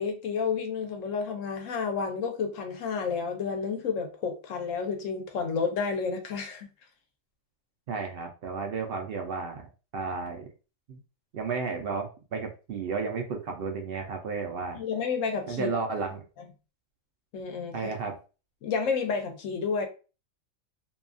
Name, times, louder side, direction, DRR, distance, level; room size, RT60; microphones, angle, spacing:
voice 1, 0.0-6.7 14.7-15.7 17.3-17.8 18.6-19.9, left 5 dB, 70° left, 1.0 m, -30 dB
voice 2, 7.9-9.7 9.9-10.5 10.9-11.0 11.3-14.8 15.5-16.2 17.7-18.2, right 4 dB, 65° right, 0.6 m, -33 dB
2.7 x 2.3 x 2.5 m
omnidirectional pair, 1.4 m